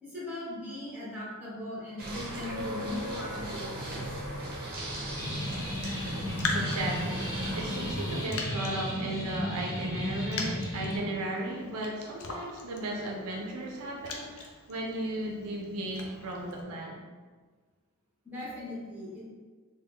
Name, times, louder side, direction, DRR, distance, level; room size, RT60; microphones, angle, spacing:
voice 1, 0.0-4.0 18.2-19.3, left 1 dB, 10° right, -9 dB, 1.4 m, -39 dB
sound 1, 2.0-8.3, right 1 dB, 45° right, 0.8 m, -37 dB
sound 2, 5.2-11.0, left 1 dB, 15° left, 0.5 m, -34 dB
Raindrop, 6.0-16.6, left 3 dB, 65° left, 0.5 m, -41 dB
voice 2, 6.5-17.0, right 1 dB, 75° right, 0 dB, 0.5 m, -35 dB
3.4 x 2.2 x 3.5 m, 1.4 s
head